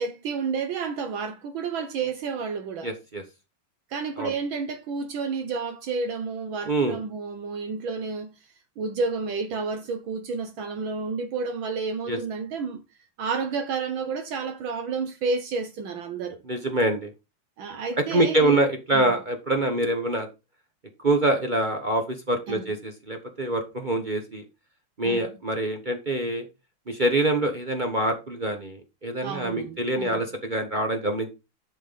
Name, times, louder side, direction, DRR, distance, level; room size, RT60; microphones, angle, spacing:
voice 1, 0.0-2.9 3.9-8.3 8.8-12.8 13.2-16.4 17.6-18.6 18.9-19.1 22.5-22.7 25.0-25.3 29.2-30.2, right 4 dB, 70° right, 1.5 m, -30 dB
voice 2, 2.8-3.2 4.2-4.3 6.7-7.0 12.1-12.2 16.5-17.1 18.0-20.3 21.0-24.4 25.0-26.5 26.9-31.3, right 2 dB, 35° right, 0.7 m, -25 dB
10.5 x 4.6 x 4.0 m
omnidirectional pair, 2.4 m